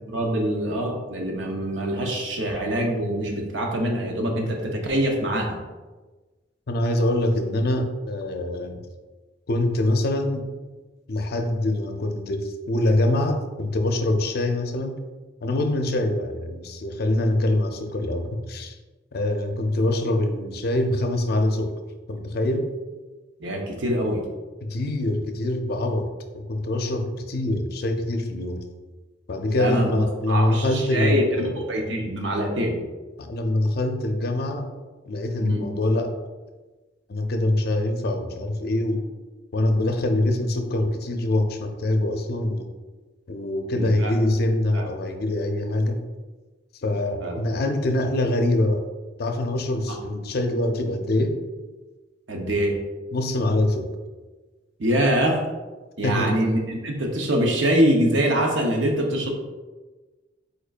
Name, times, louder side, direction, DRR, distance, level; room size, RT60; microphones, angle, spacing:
voice 1, 0.1-5.6 23.4-24.2 29.5-29.9 30.3-32.8 35.4-35.6 43.7-44.1 44.7-44.8 47.2-47.4 52.3-52.8 54.8-55.4 56.0-59.3, right 1 dB, 75° right, 1 dB, 0.8 m, -24 dB
voice 2, 6.7-8.8 9.5-10.5 11.1-15.0 15.4-18.8 19.1-21.8 22.1-22.7 24.6-28.6 29.3-31.6 33.2-34.7 35.1-36.2 37.1-39.1 39.5-42.7 43.3-46.0 46.8-48.8 49.2-51.4 53.1-53.9 56.0-56.4, left 1 dB, 55° left, 6 dB, 0.5 m, -24 dB
5.0 x 4.3 x 2.5 m, 1.3 s
head